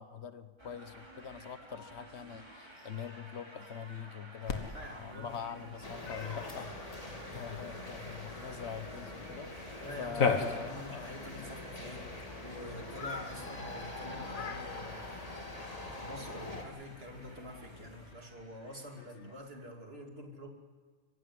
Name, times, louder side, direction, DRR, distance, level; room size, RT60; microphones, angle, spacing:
voice 1, 0.0-7.0 7.3-11.5 19.0-19.4, left 7 dB, 55° left, 12 dB, 1.2 m, -44 dB
sound 1, 0.6-19.7, right 1 dB, 20° right, 3.4 m, -53 dB
Cat, 4.5-18.1, left 5 dB, 75° left, 2.0 m, -41 dB
voice 2, 4.7-5.7 5.9-6.7 7.1-7.4 9.8-12.1 12.4-15.5 15.8-20.5, left 1 dB, 45° right, 2 dB, 3.0 m, -47 dB
sound 2, 5.8-16.6, left 2 dB, 25° left, 2.2 m, -44 dB
23.0 x 15.5 x 9.4 m, 1.5 s
omnidirectional pair, 1.4 m